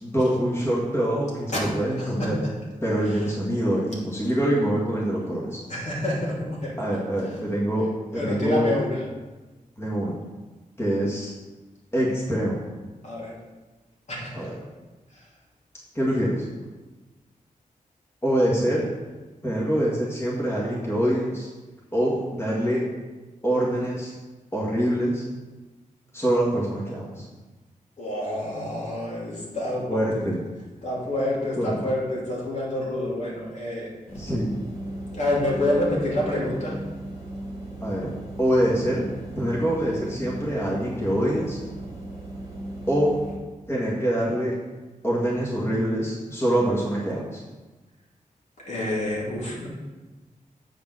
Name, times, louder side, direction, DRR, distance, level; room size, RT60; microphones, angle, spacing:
voice 1, 0.0-2.3 2.8-5.6 6.8-7.9 8.1-8.7 9.8-10.2 10.8-11.3 11.9-12.6 14.3-14.5 15.9-16.4 18.2-18.9 19.4-21.5 21.9-22.8 23.4-24.1 24.5-25.2 26.1-27.2 29.9-30.4 31.6-31.8 34.2-34.5 37.8-38.1 38.4-39.0 39.3-41.6 42.9-43.1 43.7-44.5 45.0-47.4, right 1 dB, 20° left, -6 dB, 1.8 m, -24 dB
voice 2, 2.0-2.3 3.0-3.3 5.7-6.8 7.2-7.4 8.1-9.0 13.0-13.4 14.1-14.5 15.1-15.3 28.0-30.3 30.8-33.9 34.9-36.8 48.6-49.7, left 1 dB, 55° left, -5 dB, 2.6 m, -28 dB
sound 1, 34.1-43.3, right 1 dB, 80° left, 3.2 m, -37 dB
7.8 x 5.0 x 6.3 m, 1.2 s
wide cardioid pair, 130°, 14 cm